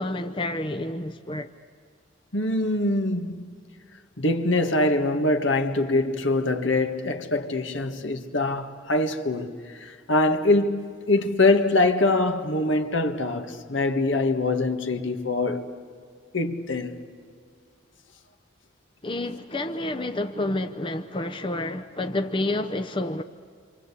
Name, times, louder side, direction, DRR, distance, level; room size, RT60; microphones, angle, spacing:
voice 1, 0.0-1.5 19.0-23.2, left 1 dB, 25° left, 0.7 m, -29 dB
voice 2, 2.3-3.6 4.2-15.7 16.3-17.0, left 2 dB, 70° left, 1.7 m, -24 dB
27.5 x 26.0 x 8.4 m
head